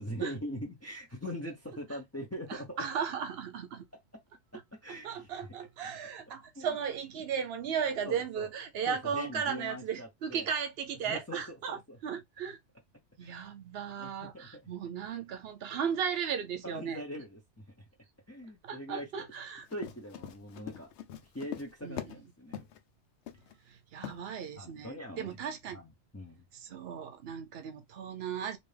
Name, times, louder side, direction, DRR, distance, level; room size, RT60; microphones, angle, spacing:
voice 1, 0.0-2.8 4.8-5.3 6.6-6.7 8.0-8.5 8.9-10.5 11.0-11.4 11.7-12.0 13.2-13.4 14.0-14.6 16.6-17.8 18.3-19.1 19.7-20.9 21.3-22.6 24.6-25.3 25.7-25.9 26.1-26.4, equal, 15° left, 0.9 m, -42 dB
voice 2, 2.5-3.9 4.9-12.6 13.2-17.0 18.6-19.7 21.8-22.2 23.6-25.8 26.5-28.6, right 7 dB, 65° right, 0.9 m, -36 dB
Run, 19.6-22.2 22.5-22.8 23.3-23.5 24.0-24.2, left 10 dB, 90° left, 0.9 m, -42 dB
3.4 x 2.8 x 3.3 m
omnidirectional pair, 1.1 m